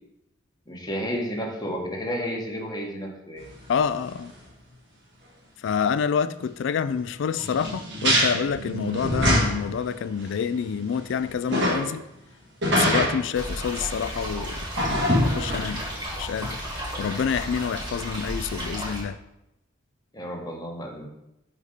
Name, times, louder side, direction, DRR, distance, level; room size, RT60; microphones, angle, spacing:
voice 1, 0.7-3.4 20.1-21.1, equal, 20° left, 1.1 m, -31 dB
sound 1, 3.4-3.5 4.0-4.1 4.4-4.5 7.4-9.8 10.2-10.3 10.8-11.8 12.6-13.2 14.8-16.0 16.4-16.5, equal, 65° right, 1.6 m, -24 dB
voice 2, 3.7-4.3 5.6-12.0 12.7-14.6 15.2-15.8 16.2-16.6 17.0-19.2, left 7 dB, 65° left, 0.3 m, -27 dB
sound 2, 13.3-19.0, equal, 25° right, 1.5 m, -33 dB
4.9 x 4.1 x 5.1 m
head